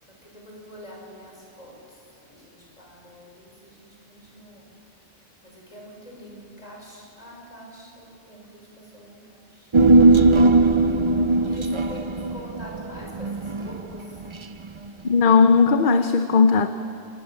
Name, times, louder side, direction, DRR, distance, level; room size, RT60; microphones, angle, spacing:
voice 1, 0.0-4.7 5.4-9.7 11.4-14.3, equal, 40° left, -1 dB, 6.3 m, -44 dB
Human voice, 9.7-14.4 14.6-14.7, right 2 dB, 30° right, 0.7 m, -18 dB
voice 2, 15.0-16.7, left 5 dB, 55° left, 9 dB, 1.0 m, -17 dB
26.0 x 20.0 x 7.5 m, 2.6 s
omnidirectional pair, 1.1 m